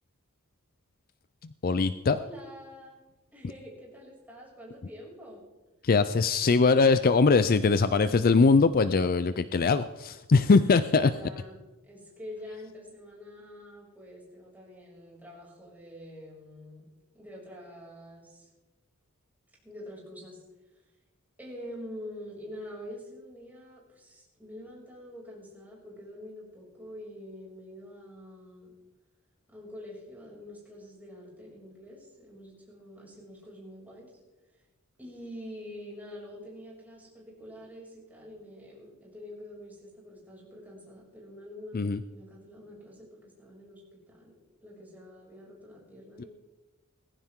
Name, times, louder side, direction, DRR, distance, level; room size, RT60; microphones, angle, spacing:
voice 1, 1.6-2.2 5.8-11.1 41.7-42.0 46.2-46.3, left 4 dB, 45° left, 13 dB, 0.5 m, -22 dB
voice 2, 2.2-3.0 3.3-5.4 10.9-16.9 17.1-18.5 19.6-20.4 21.4-28.7 29.5-34.1 35.0-44.3 44.6-46.3, left 1 dB, 10° right, -5 dB, 6.6 m, -46 dB
19.5 x 15.5 x 3.8 m, 1.1 s
head